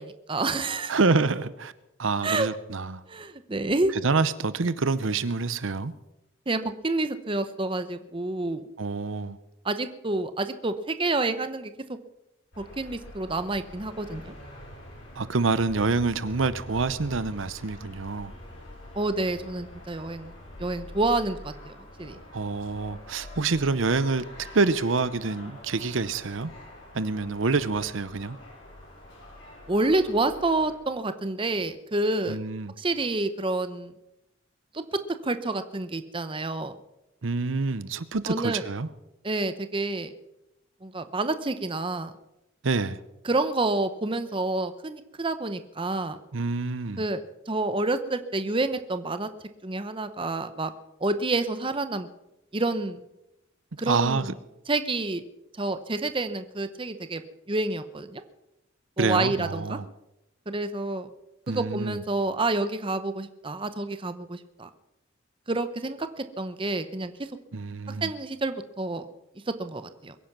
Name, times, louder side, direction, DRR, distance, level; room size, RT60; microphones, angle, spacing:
voice 1, 0.0-1.0 2.2-2.5 3.1-3.9 6.5-8.6 9.6-12.0 12.6-14.3 18.9-20.3 20.6-22.2 29.7-32.4 32.8-33.9 34.7-34.8 35.2-36.8 38.3-38.6 39.2-40.1 40.8-42.1 43.2-46.2 47.0-49.3 49.6-50.7 51.0-52.1 52.5-53.0 53.8-54.2 54.7-55.2 55.6-57.2 57.5-58.2 59.0-59.8 60.5-61.1 61.5-64.7 65.5-67.1 68.0-69.1 69.6-70.1, right 2 dB, 25° right, 10 dB, 0.8 m, -28 dB
voice 2, 0.9-1.7 2.0-3.0 4.0-5.9 8.8-9.4 15.2-18.3 22.3-24.3 24.5-26.5 26.9-28.4 32.3-32.7 37.2-38.9 42.6-43.0 46.3-47.0 53.9-54.3 59.0-59.9 61.5-62.0 67.5-68.1, right 4 dB, 70° right, 15 dB, 0.8 m, -27 dB
sound 1, 12.5-30.8, left 1 dB, 65° left, 6.1 m, -45 dB
22.5 x 10.0 x 6.0 m, 0.90 s
head